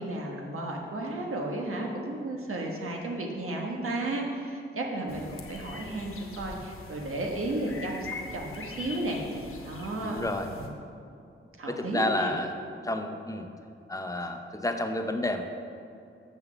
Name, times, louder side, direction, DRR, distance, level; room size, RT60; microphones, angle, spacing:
voice 1, 0.0-10.2 10.6-10.7 11.6-12.3, right 2 dB, 85° right, 0 dB, 1.3 m, -33 dB
sound 1, 5.1-10.7, left 3 dB, 90° left, 1.0 m, -43 dB
voice 2, 10.0-10.5 11.7-12.5 12.8-13.5 13.9-15.4, left 1 dB, 15° left, 5 dB, 0.6 m, -30 dB
7.1 x 6.2 x 6.7 m, 2.6 s
wide cardioid pair, 130°, 21 cm